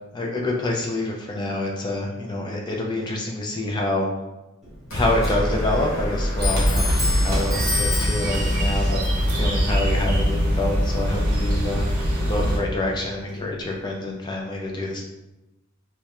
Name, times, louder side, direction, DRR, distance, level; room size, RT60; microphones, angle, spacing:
voice 1, 0.1-4.1 4.9-9.0 9.4-11.8 12.3-15.0, left 2 dB, 20° left, -1 dB, 0.3 m, -27 dB
Clock, 4.6-13.9, left 2 dB, ahead, 0.7 m, -33 dB
sound 1, 4.9-9.2, equal, 75° left, 0.8 m, -29 dB
sound 2, 6.4-12.6, equal, 45° right, 0.7 m, -22 dB
2.3 x 2.1 x 2.8 m, 1.0 s
head